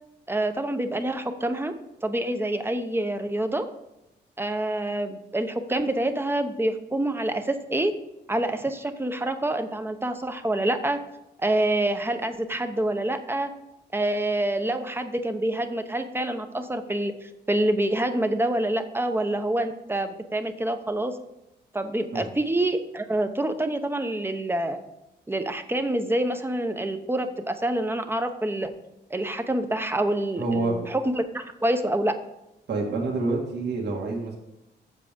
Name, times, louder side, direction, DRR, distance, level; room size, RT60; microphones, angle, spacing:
voice 1, 0.3-1.7 2.0-3.7 4.4-7.9 8.3-11.0 11.4-13.5 13.9-21.2 21.7-24.8 25.3-28.7 29.1-32.1, right 1 dB, 10° right, 8 dB, 0.8 m, -27 dB
voice 2, 30.4-30.8 32.7-34.4, right 3 dB, 65° right, -1 dB, 1.9 m, -27 dB
7.5 x 7.4 x 5.2 m, 0.92 s
cardioid pair, 105°, 19 cm